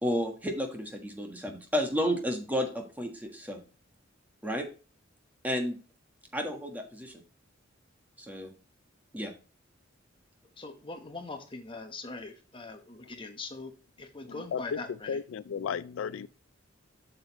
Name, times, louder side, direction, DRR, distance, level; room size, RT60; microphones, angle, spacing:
voice 1, 0.0-3.6 4.4-4.7 5.4-5.8 6.3-7.2 8.2-8.5 9.1-9.3, equal, 10° right, 1.4 m, -32 dB
voice 2, 10.6-15.2, left 3 dB, 25° left, 1.1 m, -42 dB
voice 3, 14.3-14.8 15.1-16.3, left 7 dB, 80° left, 0.4 m, -34 dB
7.7 x 6.8 x 3.0 m
head